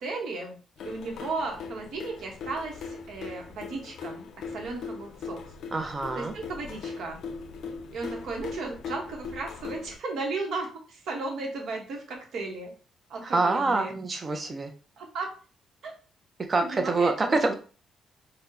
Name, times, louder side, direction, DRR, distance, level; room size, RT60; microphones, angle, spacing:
voice 1, 0.0-0.6 0.8-5.4 6.1-7.2 7.9-12.7 13.1-13.9 15.0-15.3 15.8-15.9 16.6-17.1, right 3 dB, 65° right, 1 dB, 0.9 m, -35 dB
sound 1, 0.8-10.0, left 4 dB, 65° left, 0.3 m, -40 dB
voice 2, 5.7-6.3 13.2-14.7 16.5-17.5, right 3 dB, 25° right, 6 dB, 0.5 m, -26 dB
4.2 x 2.0 x 2.6 m, 0.38 s
cardioid pair, 150°, 0 cm